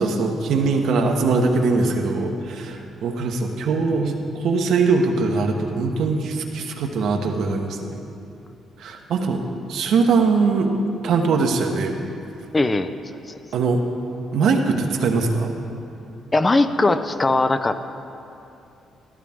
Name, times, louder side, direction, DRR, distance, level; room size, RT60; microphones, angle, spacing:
voice 1, 0.0-8.0 8.8-10.7 11.0-11.9 13.5-13.8 14.3-15.5, right 4 dB, 75° right, 3 dB, 1.1 m, -21 dB
voice 2, 12.5-12.9 16.3-17.8, left 2 dB, 25° left, 10 dB, 0.5 m, -19 dB
14.0 x 12.0 x 3.6 m, 2.8 s
cardioid pair, 90°, 0 cm